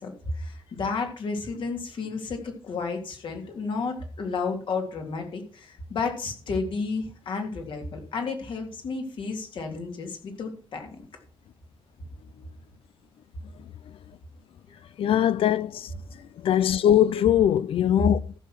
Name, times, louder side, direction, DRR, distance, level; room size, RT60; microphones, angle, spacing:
voice 1, 0.0-10.9 14.7-14.9, left 4 dB, 60° left, 3.3 m, -32 dB
voice 2, 15.0-18.3, left 11 dB, 75° left, 0.5 m, -22 dB
14.0 x 6.7 x 6.1 m
wide cardioid pair, 140°, 9 cm